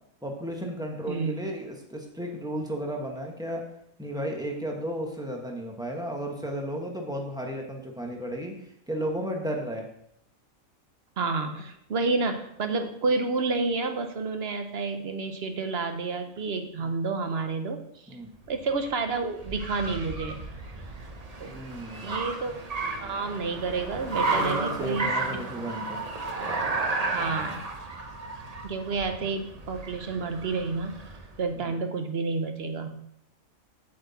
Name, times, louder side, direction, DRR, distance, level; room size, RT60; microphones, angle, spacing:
voice 1, 0.2-3.6 4.0-8.6 8.9-9.9 18.1-18.3 21.4-22.2 24.1-26.0 31.6-31.8, equal, 5° right, 1 dB, 1.3 m, -34 dB
voice 2, 11.2-17.8 18.5-20.4 21.4-21.5 22.0-22.6 23.0-25.1 27.1-27.6 28.6-30.9 31.4-32.9, right 4 dB, 50° right, 7 dB, 1.1 m, -29 dB
Car, 18.4-31.4, right 3 dB, 35° right, 0.8 m, -33 dB
7.9 x 7.8 x 4.2 m, 0.74 s
omnidirectional pair, 1.5 m